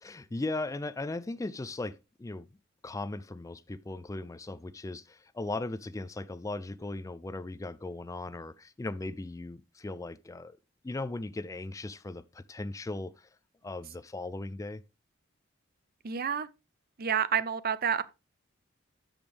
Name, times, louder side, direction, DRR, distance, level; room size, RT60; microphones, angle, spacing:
voice 1, 0.0-2.5 2.8-10.6 10.8-13.3 13.6-14.8, left 2 dB, 15° left, 0.3 m, -38 dB
voice 2, 16.0-16.5 17.0-18.0, right 8 dB, 50° right, 0.6 m, -29 dB
13.0 x 5.2 x 3.4 m
head